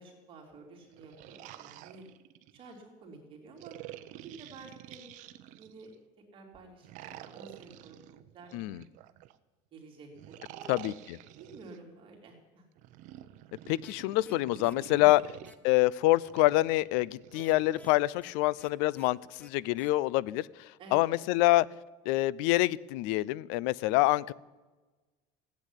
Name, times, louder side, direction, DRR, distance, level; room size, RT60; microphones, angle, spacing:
voice 1, 0.0-2.0 2.5-3.8 4.1-5.1 5.5-5.9 6.3-8.9 9.7-10.7 11.3-12.6 15.0-15.1 20.8-21.2, right 3 dB, 35° right, 1 dB, 3.0 m, -51 dB
sound 1, 0.8-2.8 3.6-5.9 6.8-9.4 10.2-11.8 12.8-15.6 16.2-17.9, right 14 dB, 55° right, 0.8 m, -49 dB
voice 2, 8.5-8.8 10.7-11.2 13.7-15.2 15.6-21.7 22.1-24.3, left 18 dB, 80° left, 23 dB, 0.5 m, -26 dB
sound 2, 13.8-13.9 14.2-14.3 14.6-14.7 15.0-15.2 15.4-15.5 17.3-18.3 18.6-18.7 18.9-19.1 19.4-19.5 19.8-19.9, left 2 dB, 10° left, 0.7 m, -54 dB
15.5 x 8.5 x 9.9 m, 1.2 s
cardioid pair, 165°, 15 cm